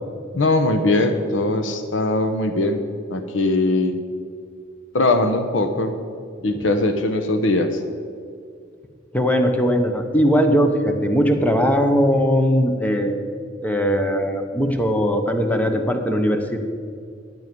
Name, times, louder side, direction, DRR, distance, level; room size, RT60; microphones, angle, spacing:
voice 1, 0.3-2.8 3.1-4.0 4.9-5.9 6.4-7.8, left 2 dB, 70° left, 7 dB, 0.9 m, -20 dB
voice 2, 9.1-13.2 13.6-16.6, equal, 10° left, 5 dB, 1.0 m, -19 dB
12.5 x 9.4 x 5.3 m, 2.2 s
head